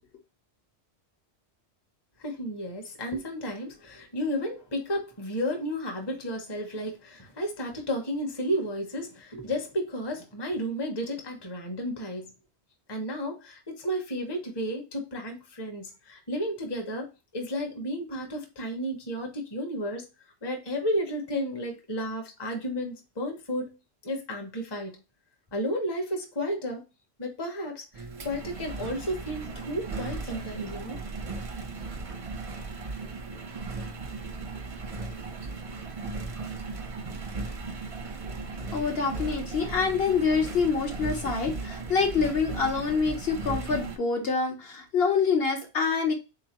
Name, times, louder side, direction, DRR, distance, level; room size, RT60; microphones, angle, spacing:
voice 1, 2.2-12.3 12.9-20.1 20.4-23.7 24.0-24.9 25.5-26.8 27.2-31.0, equal, 25° left, 0.7 m, -32 dB
Engine, 27.9-44.0, right 3 dB, 40° right, 0.5 m, -36 dB
voice 2, 38.7-46.1, left 5 dB, 65° left, 1.0 m, -26 dB
3.9 x 2.9 x 2.8 m
omnidirectional pair, 1.1 m